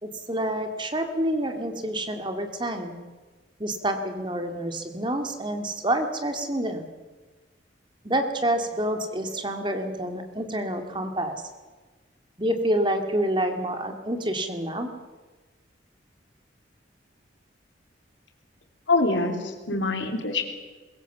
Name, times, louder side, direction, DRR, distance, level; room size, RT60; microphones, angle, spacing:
voice 1, 0.0-3.0 3.6-6.9 8.0-11.4 12.4-14.9 19.7-19.8, right 1 dB, 25° right, 6 dB, 2.1 m, -28 dB
voice 2, 18.9-20.4, left 3 dB, 80° left, 4 dB, 3.5 m, -25 dB
22.0 x 22.0 x 7.2 m, 1.3 s
head